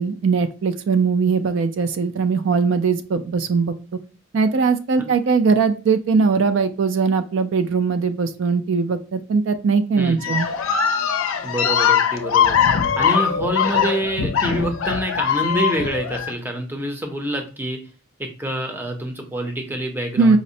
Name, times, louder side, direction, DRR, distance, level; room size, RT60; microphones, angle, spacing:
voice 1, 0.0-3.7 4.3-10.5 20.2-20.4, right 5 dB, 70° right, 10 dB, 0.3 m, -20 dB
voice 2, 10.0-10.4 11.4-17.8 18.2-20.4, right 1 dB, 10° right, 4 dB, 0.5 m, -26 dB
sound 1, 10.2-16.3, left 7 dB, 80° left, 0.5 m, -21 dB
5.0 x 2.0 x 2.6 m, 0.36 s
head